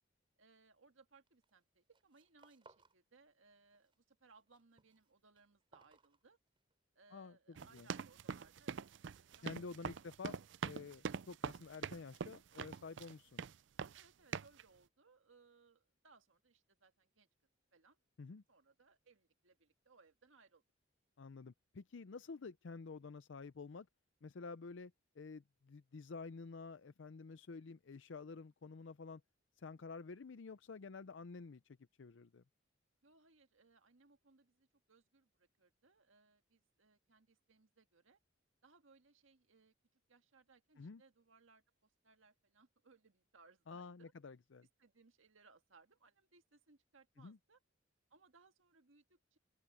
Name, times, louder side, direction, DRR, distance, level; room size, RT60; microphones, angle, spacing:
voice 1, 0.4-6.4 7.0-10.1 13.9-17.3 17.7-18.0 18.5-20.6 33.0-38.2 38.6-44.1 44.8-47.6 48.1-49.4, right 4 dB, 85° right, 1.7 m, -68 dB
sound 1, 1.3-1.6 1.8-3.0 3.3-4.0 4.3-6.8, right 3 dB, 25° right, 5.2 m, -68 dB
sound 2, 7.6-13.1 13.4-14.1 14.3-14.6, right 6 dB, 65° right, 0.4 m, -43 dB
voice 2, 9.4-10.4 10.6-13.4 18.2-18.4 21.2-23.9 24.2-29.2 29.6-32.4 40.8-41.0 43.7-44.7 47.2-47.4, left 4 dB, 70° left, 0.5 m, -50 dB
open air
head